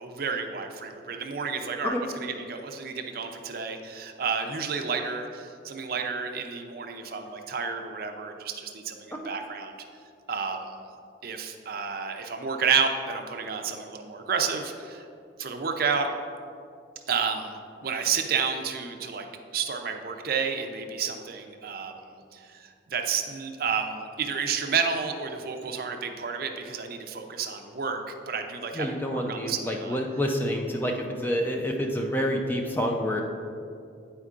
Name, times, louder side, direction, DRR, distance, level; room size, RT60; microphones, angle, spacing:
voice 1, 0.0-9.7 10.3-10.8 11.2-15.0 15.4-16.1 17.1-17.5 17.8-19.3 19.5-22.0 22.3-22.4 22.9-28.0 28.3-29.9, right 6 dB, 50° right, 5 dB, 0.5 m, -30 dB
voice 2, 28.7-33.2, equal, 10° left, 1 dB, 0.4 m, -28 dB
9.4 x 4.4 x 2.4 m, 2.4 s
head